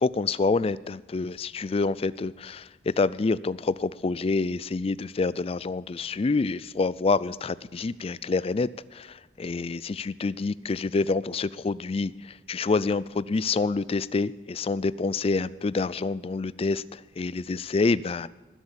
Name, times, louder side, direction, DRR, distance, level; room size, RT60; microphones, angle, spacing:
voice 1, 0.0-18.3, left 3 dB, 35° left, 19 dB, 0.4 m, -27 dB
19.5 x 8.0 x 7.3 m, 1.2 s
head